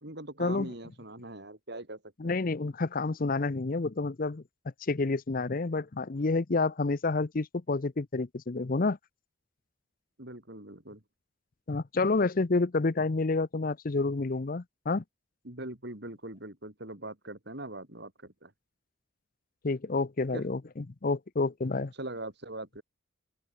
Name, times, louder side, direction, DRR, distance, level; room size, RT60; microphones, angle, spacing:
voice 1, 0.0-2.3 10.2-11.0 15.4-18.5 20.3-20.4 21.9-22.8, right 1 dB, 55° right, 4.0 m, -42 dB
voice 2, 2.2-4.4 4.8-9.0 11.7-15.0 19.6-20.6 21.0-21.9, left 3 dB, 45° left, 0.6 m, -29 dB
open air
head